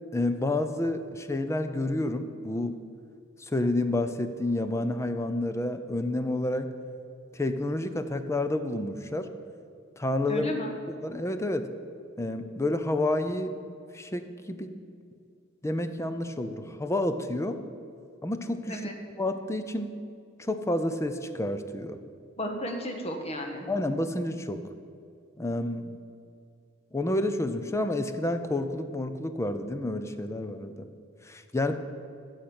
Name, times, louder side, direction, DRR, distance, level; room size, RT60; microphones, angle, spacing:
voice 1, 0.1-2.8 3.5-6.7 7.3-9.3 10.0-10.5 11.0-11.7 12.2-13.5 13.9-14.7 15.6-17.6 18.2-18.8 19.2-19.9 20.4-22.0 23.7-24.6 25.4-26.0 26.9-30.9 31.2-31.7, left 1 dB, 15° left, 9 dB, 0.5 m, -29 dB
voice 2, 10.3-10.8 18.7-18.9 22.4-23.7, equal, 30° left, 3 dB, 1.5 m, -33 dB
10.0 x 6.5 x 8.6 m, 2.4 s
head